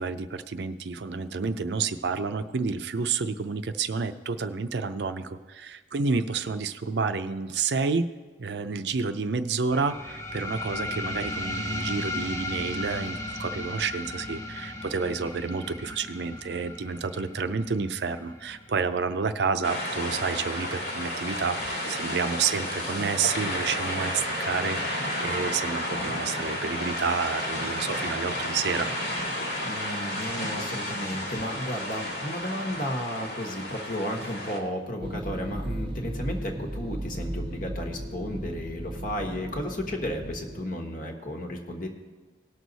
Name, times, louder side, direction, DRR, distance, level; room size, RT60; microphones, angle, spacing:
voice 1, 0.0-8.1 8.4-28.9, right 5 dB, 65° right, 10 dB, 0.5 m, -30 dB
sound 1, 9.7-20.8, left 1 dB, 15° left, 1.0 m, -36 dB
sound 2, 19.6-34.6, left 1 dB, 80° left, 2.0 m, -32 dB
voice 2, 29.6-41.9, equal, 50° left, 3 dB, 1.4 m, -33 dB
sound 3, 35.0-40.6, right 1 dB, 30° right, 0.8 m, -35 dB
18.0 x 6.3 x 4.1 m, 1.4 s
head